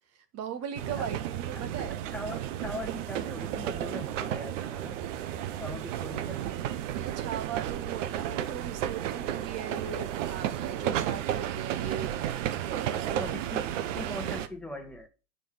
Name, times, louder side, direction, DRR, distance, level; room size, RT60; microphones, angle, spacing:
voice 1, 0.3-2.0 7.0-12.1 12.6-13.2, right 8 dB, 30° right, 1.7 m, -38 dB
sound 1, 0.8-14.5, right 11 dB, 50° right, 1.1 m, -33 dB
voice 2, 2.1-5.0 5.6-6.6 12.9-15.1, left 1 dB, 5° left, 1.7 m, -41 dB
9.1 x 5.4 x 6.7 m
hypercardioid pair, 115°, 49 cm